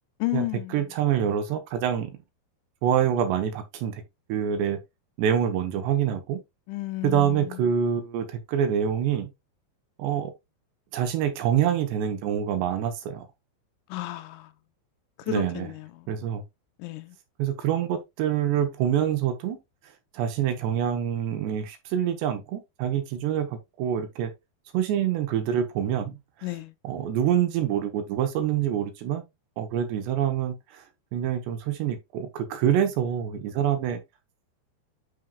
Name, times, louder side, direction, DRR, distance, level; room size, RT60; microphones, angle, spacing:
voice 1, 0.2-0.8 6.7-7.7 13.9-14.5 15.2-16.2 16.8-17.2 26.4-26.7, left 16 dB, 85° left, 3.1 m, -32 dB
voice 2, 0.7-2.1 2.8-4.0 4.3-4.8 5.2-6.4 7.0-9.3 10.0-10.3 10.9-13.3 15.3-15.7 16.1-16.4 17.4-19.6 20.1-24.3 24.7-26.2 26.8-29.2 29.6-30.8 31.1-34.0, right 9 dB, 70° right, 3.0 m, -26 dB
11.0 x 5.6 x 2.4 m
omnidirectional pair, 5.6 m